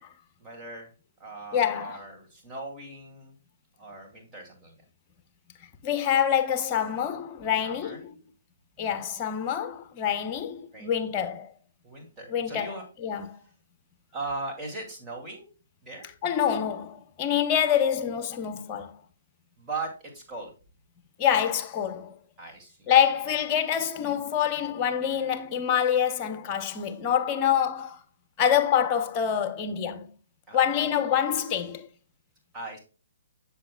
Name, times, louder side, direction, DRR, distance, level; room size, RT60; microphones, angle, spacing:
voice 1, 0.4-0.9 1.2-3.3 3.8-4.7 7.5-8.0 8.8-9.1 10.0-10.1 10.7-11.1 11.8-12.8 14.1-15.5 15.8-16.1 19.6-20.5 22.4-22.9 23.2-23.3 30.5-31.0 32.5-32.8, right 3 dB, 15° right, 2.5 m, -39 dB
voice 2, 1.5-2.0 5.8-8.0 8.8-11.5 12.3-12.7 13.0-13.3 16.2-18.9 21.2-22.1 22.9-28.0 28.4-30.1 30.5-31.9, left 9 dB, 25° left, 0.9 m, -26 dB
7.5 x 6.8 x 2.3 m
figure-of-eight pair, 135°, 0 cm